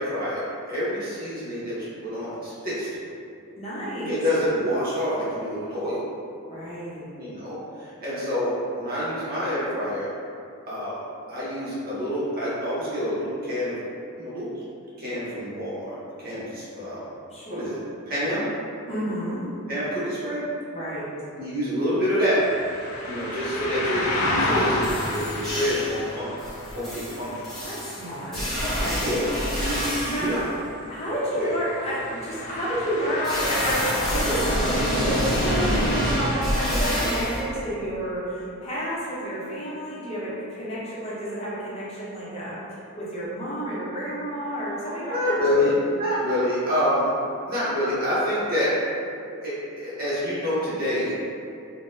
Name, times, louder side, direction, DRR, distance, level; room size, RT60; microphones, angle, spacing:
voice 1, 0.0-3.1 4.1-6.0 7.2-10.1 10.7-10.9 11.3-13.8 14.2-14.5 15.0-17.0 17.5-17.8 18.1-18.4 19.7-20.4 21.4-22.4 23.0-26.3 26.7-27.3 29.0-29.3 29.6-29.8 30.2-30.4 31.3-31.5 45.1-47.1 47.5-48.7 49.4-51.1, equal, 45° right, -10 dB, 1.0 m, -27 dB
voice 2, 3.6-4.2 6.5-7.1 17.3-17.7 18.9-19.5 20.7-21.1 27.6-30.5 30.9-42.6 43.0-45.8, right 1 dB, 30° left, -9 dB, 0.7 m, -30 dB
sound 1, 22.4-35.7, left 1 dB, 80° left, 0.5 m, -32 dB
sound 2, 24.5-24.6 24.8-26.0 26.4-30.4 33.2-37.4, equal, ahead, 1.0 m, -27 dB
3.8 x 2.1 x 2.5 m, 2.5 s
head